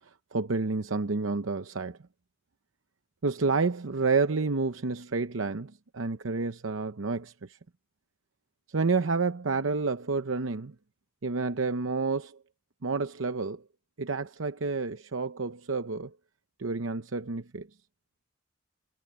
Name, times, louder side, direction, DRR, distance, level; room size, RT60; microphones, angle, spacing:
voice 1, 0.3-2.0 3.2-7.6 8.7-10.7 11.2-12.4 12.8-13.6 14.0-16.1 16.6-17.7, right 4 dB, 80° right, 0.8 m, -29 dB
head